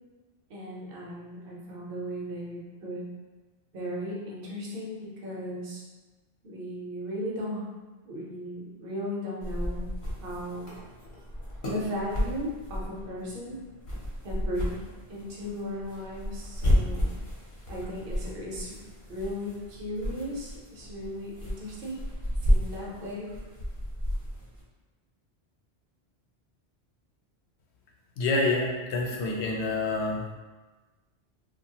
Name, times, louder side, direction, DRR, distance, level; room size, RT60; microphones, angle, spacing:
voice 1, 0.5-3.0 3.7-5.8 6.4-7.7 8.0-9.9 10.2-10.7 11.7-13.6 14.2-14.8 15.1-17.2 17.7-18.8 19.1-22.0 22.4-23.3, equal, 60° right, -4 dB, 0.9 m, -36 dB
sound 1, 9.4-24.6, equal, 55° left, 0.9 m, -32 dB
voice 2, 28.2-30.2, left 2 dB, 90° left, 0 dB, 0.9 m, -27 dB
2.8 x 2.4 x 2.8 m, 1.3 s
omnidirectional pair, 1.1 m